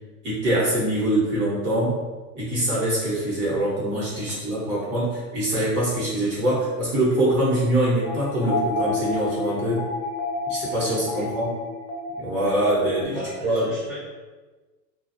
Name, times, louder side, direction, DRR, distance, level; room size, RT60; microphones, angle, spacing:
voice 1, 0.2-2.0 2.3-9.9 10.5-11.5 12.2-13.2 13.4-13.7, right 1 dB, 20° right, -8 dB, 0.8 m, -24 dB
sound 1, 8.0-13.0, left 2 dB, 65° left, 0.7 m, -30 dB
voice 2, 13.0-14.0, equal, 15° left, -12 dB, 0.5 m, -37 dB
2.3 x 2.0 x 2.6 m, 1.3 s
hypercardioid pair, 140°, 49 cm